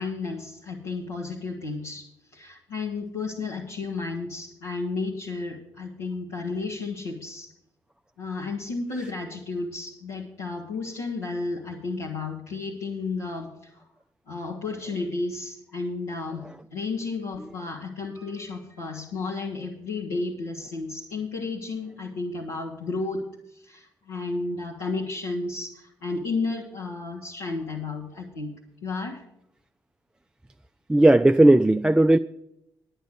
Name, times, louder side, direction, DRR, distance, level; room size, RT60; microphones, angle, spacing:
voice 1, 0.0-7.5 8.2-13.9 14.3-28.5 28.8-29.2, left 3 dB, 75° left, 1.2 m, -32 dB
voice 2, 30.9-32.2, right 1 dB, 10° right, 0.3 m, -16 dB
10.5 x 8.7 x 6.2 m
figure-of-eight pair, 40°, 11 cm